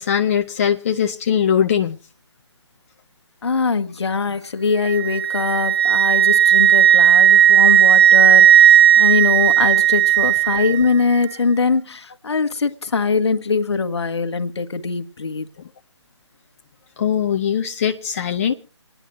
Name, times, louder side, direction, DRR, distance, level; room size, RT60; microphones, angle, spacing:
voice 1, 0.0-2.0 17.0-18.5, left 8 dB, 30° left, 0.6 m, -20 dB
voice 2, 3.4-15.5, left 4 dB, 60° left, 1.3 m, -22 dB
Wind instrument woodwind instrument, 4.8-10.8, right 10 dB, 55° right, 1.4 m, -13 dB
28.5 x 10.0 x 3.0 m
figure-of-eight pair, 150°, 15 cm